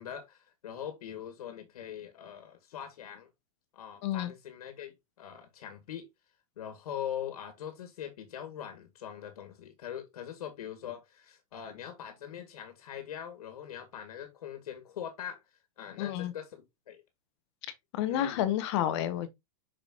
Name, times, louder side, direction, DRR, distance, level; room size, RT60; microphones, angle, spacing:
voice 1, 0.0-3.3 3.7-6.1 6.6-15.4 15.8-17.0 18.1-18.6, left 9 dB, 90° left, 1.9 m, -42 dB
voice 2, 16.0-16.3 17.9-19.3, left 11 dB, 50° left, 1.4 m, -30 dB
6.2 x 6.0 x 2.8 m
supercardioid pair, 160°, 19 cm